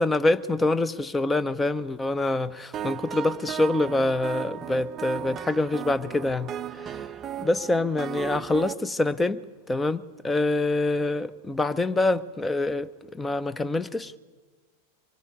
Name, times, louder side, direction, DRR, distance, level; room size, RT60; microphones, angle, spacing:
voice 1, 0.0-6.5 6.8-7.0 7.4-9.4 9.7-14.2, left 2 dB, 10° left, 0.9 m, -25 dB
sound 1, 2.7-8.7, right 10 dB, 25° right, 0.7 m, -36 dB
24.5 x 22.0 x 9.6 m
figure-of-eight pair, 90°, 0 cm